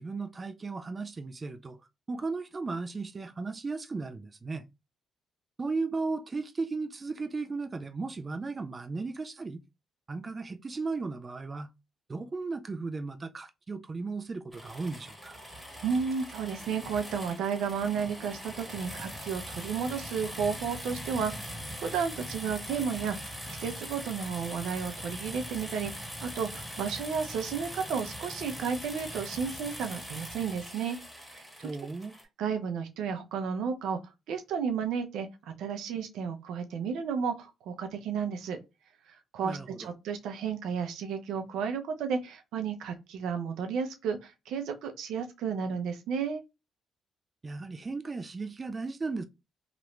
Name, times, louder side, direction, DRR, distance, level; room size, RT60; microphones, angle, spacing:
voice 1, 0.0-1.8 2.1-4.6 5.6-9.6 10.1-11.7 12.1-15.4 31.6-32.1 39.4-39.9 47.4-49.3, right 3 dB, 30° right, 0.4 m, -35 dB
sound 1, 14.5-32.2, equal, 5° right, 1.5 m, -41 dB
voice 2, 15.8-31.0 31.3-31.7 32.4-34.0 34.3-38.6 39.3-46.4, right 6 dB, 85° right, 0.6 m, -33 dB
2.9 x 2.5 x 3.1 m
cardioid pair, 90°, 0 cm